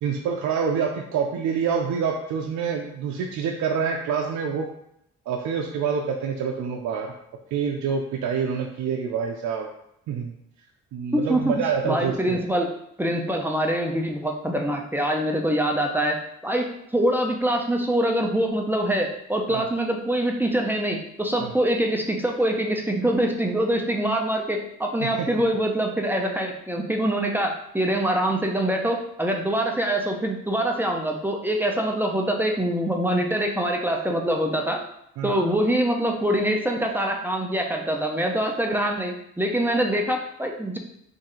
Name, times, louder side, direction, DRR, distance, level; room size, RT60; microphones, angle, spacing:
voice 1, 0.0-4.7 5.3-7.1 7.5-9.7 10.1-10.3 10.9-12.4 19.5-19.6 21.4-21.5 25.0-25.3 35.2-35.4, right 6 dB, 70° right, 1 dB, 0.5 m, -27 dB
voice 2, 11.1-11.5 11.8-12.7 13.0-16.2 16.4-34.8 35.2-40.8, right 1 dB, 5° right, 1 dB, 0.5 m, -24 dB
3.2 x 2.7 x 3.8 m, 0.76 s
cardioid pair, 90°, 30 cm